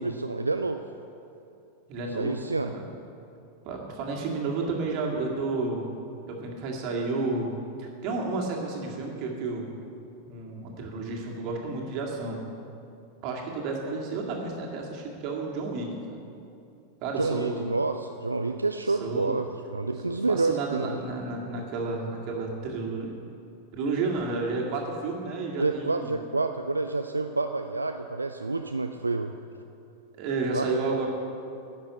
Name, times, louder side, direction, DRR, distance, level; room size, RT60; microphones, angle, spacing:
voice 1, 0.0-0.8 2.1-2.7 17.2-21.0 25.6-29.3 30.5-30.7, right 3 dB, 80° right, 6 dB, 0.4 m, -28 dB
voice 2, 1.9-2.4 2.7-2.8 3.7-5.9 6.3-7.5 7.8-9.7 10.2-12.4 13.2-16.2 17.0-17.6 18.9-19.3 20.1-23.1 23.7-26.1 30.2-31.1, right 3 dB, 40° right, -1 dB, 2.2 m, -31 dB
11.0 x 6.8 x 8.1 m, 2.6 s
figure-of-eight pair, 90°, 0 cm